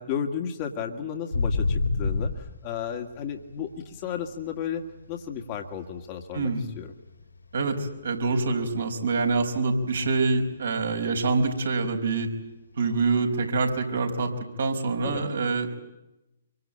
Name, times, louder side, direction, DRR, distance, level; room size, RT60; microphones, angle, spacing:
voice 1, 0.0-6.9 15.0-15.2, left 8 dB, 35° left, 3 dB, 2.0 m, -33 dB
sound 1, 1.3-4.6 5.0-7.2 7.5-7.9 8.2-10.1 10.4-10.5 10.8-11.2 11.6-11.7 13.9-14.0, left 3 dB, 85° left, 4.7 m, -29 dB
voice 2, 6.3-6.6 7.5-12.3 12.8-14.3 14.6-15.7, right 3 dB, 65° right, 4 dB, 4.9 m, -25 dB
25.5 x 24.5 x 8.8 m, 0.94 s
figure-of-eight pair, 125°, 0 cm